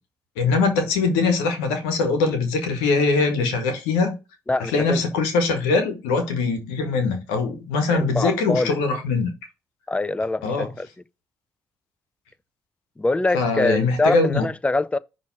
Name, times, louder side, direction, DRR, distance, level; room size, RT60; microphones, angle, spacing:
voice 1, 0.4-4.2 4.7-9.3 10.4-10.7 13.3-14.5, left 4 dB, 85° left, 1.1 m, -22 dB
voice 2, 4.5-5.0 7.9-8.8 9.9-10.9 13.0-15.0, left 2 dB, 15° left, 0.4 m, -24 dB
5.8 x 3.1 x 5.6 m
hypercardioid pair, 50°, 8 cm